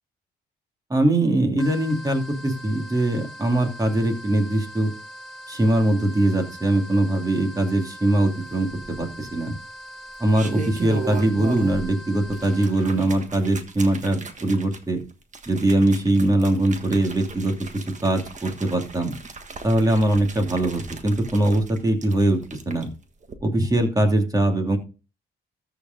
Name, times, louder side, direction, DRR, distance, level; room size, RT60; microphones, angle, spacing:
voice 1, 0.9-4.9 5.5-9.5 10.2-15.0 15.5-17.5 18.0-19.1 19.6-22.9 23.4-24.8, right 1 dB, 20° right, 3 dB, 2.6 m, -22 dB
sound 1, 1.6-13.0, equal, ahead, 3.8 m, -41 dB
sound 2, 8.6-9.3 10.1-11.9 12.2-22.8 23.2-23.3, right 4 dB, 40° right, 1.5 m, -37 dB
13.5 x 5.0 x 3.9 m, 0.33 s
cardioid pair, 90°, 20 cm